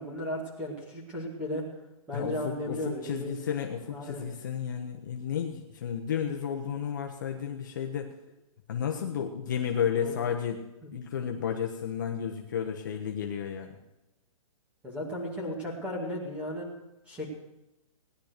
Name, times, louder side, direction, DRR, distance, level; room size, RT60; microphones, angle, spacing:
voice 1, 0.0-1.6 2.1-3.3 3.9-4.2 10.0-10.2 10.8-10.9 14.8-16.7 17.1-17.3, equal, 5° right, -2 dB, 2.4 m, -35 dB
voice 2, 2.1-8.1 8.7-10.6 10.9-13.8, left 8 dB, 35° left, 3 dB, 1.0 m, -32 dB
18.0 x 10.5 x 6.6 m, 0.97 s
hypercardioid pair, 180°, 18 cm